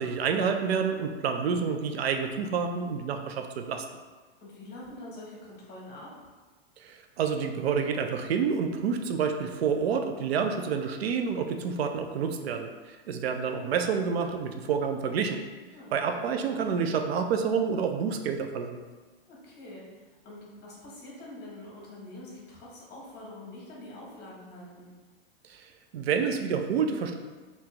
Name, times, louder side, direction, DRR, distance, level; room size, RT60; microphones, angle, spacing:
voice 1, 0.0-3.8 6.8-15.4 15.9-18.8 25.5-27.1, right 6 dB, 80° right, 5 dB, 0.5 m, -28 dB
voice 2, 4.4-6.1 15.7-16.3 19.3-24.9, left 1 dB, 30° left, -4 dB, 1.4 m, -45 dB
2.9 x 2.8 x 3.3 m, 1.3 s
hypercardioid pair, 110°, 31 cm